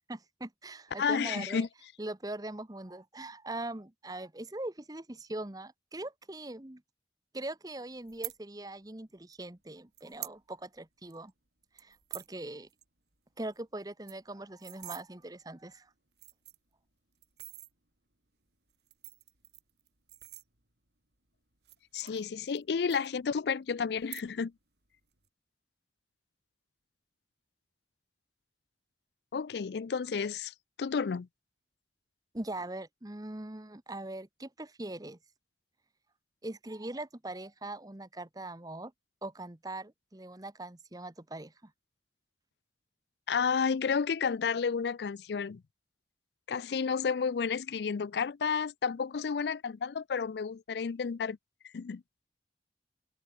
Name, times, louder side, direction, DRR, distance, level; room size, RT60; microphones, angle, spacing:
voice 1, 0.1-1.7 2.0-6.8 7.3-11.3 11.7-12.7 13.4-15.9 32.3-35.2 36.4-38.9 39.2-41.7, right 2 dB, 20° right, 1.0 m, -41 dB
voice 2, 1.0-1.7 21.9-24.5 29.3-31.3 43.3-45.6 46.5-51.4 51.7-52.0, left 6 dB, 70° left, 0.4 m, -31 dB
sound 1, 8.1-8.4 9.3-9.4 9.9-10.4 10.8-10.9 11.1-11.3 11.8-12.3 12.7-12.8 13.1-13.2 13.5-13.6 13.9-15.0 15.7-15.8 16.1-16.7 17.2-17.7 18.7-20.9 21.5-22.6 22.9-23.5 24.0-24.6 24.8-25.3, right 17 dB, 70° right, 6.2 m, -46 dB
open air
head